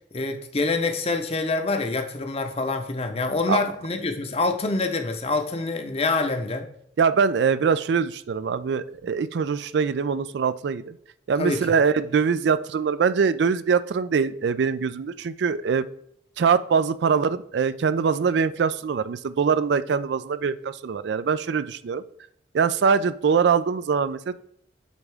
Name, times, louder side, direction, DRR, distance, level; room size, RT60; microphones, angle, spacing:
voice 1, 0.1-6.7 11.4-11.7, left 3 dB, 35° left, 6 dB, 0.7 m, -26 dB
voice 2, 7.0-10.9 11.3-15.8 16.4-22.0 22.5-24.4, right 6 dB, 70° right, 14 dB, 0.4 m, -23 dB
8.1 x 3.5 x 3.4 m, 0.70 s
head